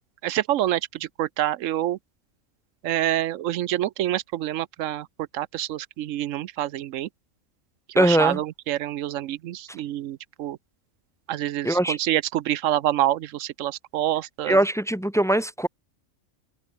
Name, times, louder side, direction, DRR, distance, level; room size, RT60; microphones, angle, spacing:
voice 1, 0.2-2.0 2.8-5.1 5.3-7.1 7.9-10.6 11.3-14.6, right 13 dB, 75° right, 1.0 m, -27 dB
voice 2, 8.0-8.4 11.6-12.0 14.5-15.7, right 1 dB, 5° left, 0.9 m, -21 dB
omnidirectional pair, 1.4 m